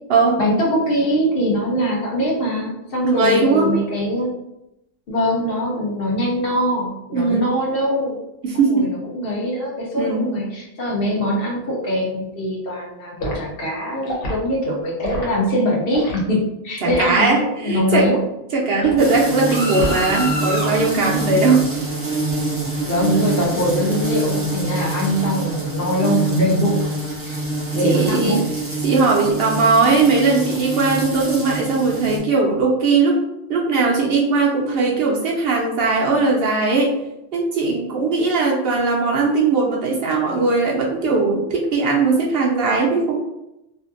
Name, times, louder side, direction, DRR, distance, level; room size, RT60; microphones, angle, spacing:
voice 1, 0.4-4.3 5.1-8.2 8.5-16.4 16.6-18.2 22.8-26.9 27.2-27.4 27.7-28.4, equal, 55° left, -3 dB, 0.8 m, -22 dB
voice 2, 3.0-3.7 7.1-7.6 8.4-8.9 10.0-10.3 16.8-18.1 18.5-21.7 27.8-28.5 28.8-33.2 33.5-36.9 37.3-43.2, right 4 dB, 65° right, -2 dB, 0.7 m, -19 dB
Liquid, 13.2-13.4 14.0-14.4 15.0-15.3 15.9-16.2 16.8-17.1 17.9-18.1 18.8-19.1 19.7-20.2 20.5-20.8, left 1 dB, 80° left, 1.1 m, -28 dB
sound 1, 19.0-32.2, right 1 dB, 15° right, 0.5 m, -25 dB
2.6 x 2.5 x 2.5 m, 0.87 s
omnidirectional pair, 1.2 m